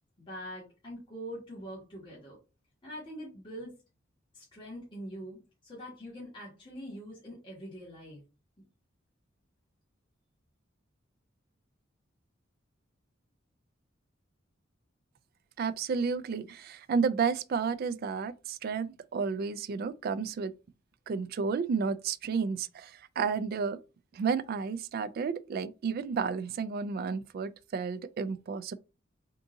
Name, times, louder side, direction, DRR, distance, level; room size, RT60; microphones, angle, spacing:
voice 1, 0.2-2.4 2.8-3.7 4.3-8.2, equal, 25° left, 1.4 m, -43 dB
voice 2, 15.6-20.5 21.1-23.8 24.1-28.7, right 5 dB, 50° right, 0.3 m, -32 dB
3.6 x 2.6 x 3.7 m
head